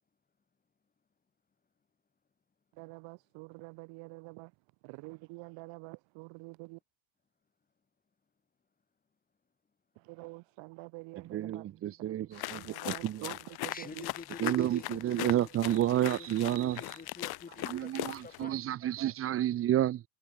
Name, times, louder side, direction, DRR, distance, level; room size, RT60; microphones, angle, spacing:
voice 1, 2.8-4.5 4.8-6.8 10.0-11.7 12.1-14.0, right 26 dB, 65° right, 4.0 m, -47 dB
voice 2, 11.3-13.4 14.4-17.0 17.7-20.0, right 12 dB, 30° right, 0.6 m, -30 dB
sound 1, 12.3-18.4, left 17 dB, 50° left, 1.9 m, -39 dB
voice 3, 13.7-18.6, left 5 dB, 15° left, 3.0 m, -49 dB
supercardioid pair, 125°, 49 cm